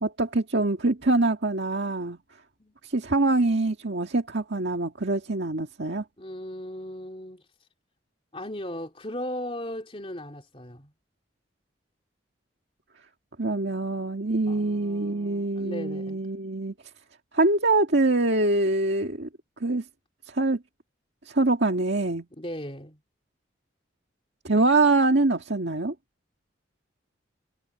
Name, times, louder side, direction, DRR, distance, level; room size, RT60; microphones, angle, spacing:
voice 1, 0.0-2.2 2.8-6.0 13.4-16.7 17.3-19.3 19.6-19.8 20.3-20.6 21.3-22.3 24.4-25.9, right 2 dB, 70° right, 1.9 m, -24 dB
voice 2, 6.2-7.4 8.3-10.9 14.5-16.3 22.3-23.0, left 1 dB, 30° left, 3.3 m, -37 dB
head